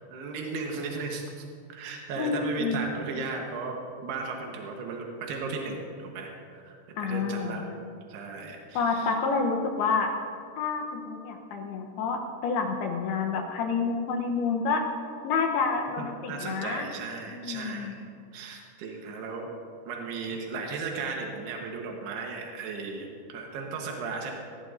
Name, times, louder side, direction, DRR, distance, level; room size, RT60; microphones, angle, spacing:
voice 1, 0.0-7.7 8.1-9.2 16.0-18.0 18.3-19.5 19.9-24.3, right 4 dB, 85° right, 1 dB, 3.3 m, -36 dB
voice 2, 2.2-2.9 7.0-7.6 8.8-10.1 10.6-14.8 15.2-16.9 17.3-18.0, left 5 dB, 80° left, 3 dB, 2.9 m, -29 dB
19.5 x 15.0 x 2.7 m, 2.3 s
omnidirectional pair, 4.6 m